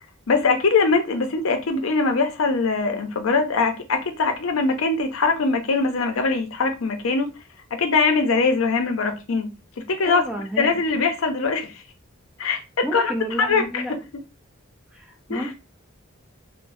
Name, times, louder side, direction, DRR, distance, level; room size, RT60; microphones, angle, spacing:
voice 1, 0.3-7.3 7.8-9.5 9.9-10.2 10.6-11.7 12.4-12.6 12.9-13.1 13.4-13.8 15.3-15.5, left 4 dB, 90° left, 0.6 m, -22 dB
voice 2, 10.0-10.7 12.8-13.9 14.9-15.5, equal, 5° right, 0.6 m, -31 dB
3.2 x 2.1 x 2.6 m
head